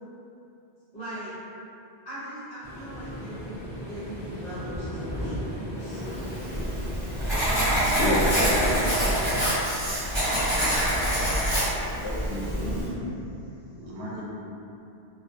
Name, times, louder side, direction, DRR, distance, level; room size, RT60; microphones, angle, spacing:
voice 1, 0.9-1.3 2.0-6.0, equal, 45° left, -16 dB, 1.0 m, -39 dB
Waves surf, 2.6-11.0, equal, ahead, 1.1 m, -37 dB
Writing, 6.1-12.9, equal, 25° right, 1.1 m, -25 dB
voice 2, 7.9-9.4 11.6-12.9, equal, 90° left, -6 dB, 0.9 m, -30 dB
voice 3, 12.4-13.3 13.6-14.2, left 1 dB, 85° right, -6 dB, 0.9 m, -37 dB
2.4 x 2.4 x 2.5 m, 2.8 s
omnidirectional pair, 1.1 m